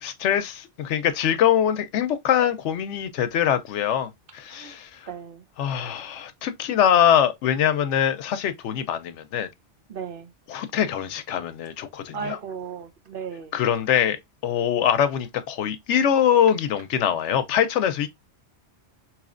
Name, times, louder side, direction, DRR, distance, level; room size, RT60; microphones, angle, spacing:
voice 1, 0.0-5.1 5.6-9.5 10.5-12.4 13.5-18.1, left 9 dB, 85° left, 0.9 m, -23 dB
voice 2, 5.1-5.5 9.9-10.3 12.1-13.5, right 6 dB, 55° right, 0.8 m, -35 dB
4.1 x 3.0 x 2.4 m
omnidirectional pair, 1.2 m